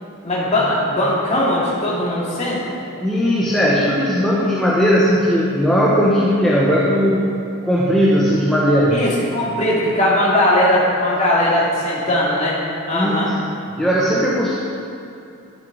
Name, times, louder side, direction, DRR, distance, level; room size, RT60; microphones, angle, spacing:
voice 1, 0.2-2.8 8.9-12.6 12.9-13.3, left 1 dB, 30° left, -6 dB, 2.4 m, -19 dB
voice 2, 3.0-7.3 7.6-9.0 12.9-13.4 13.8-14.6, equal, ahead, -6 dB, 1.0 m, -17 dB
11.0 x 11.0 x 4.0 m, 2.6 s
head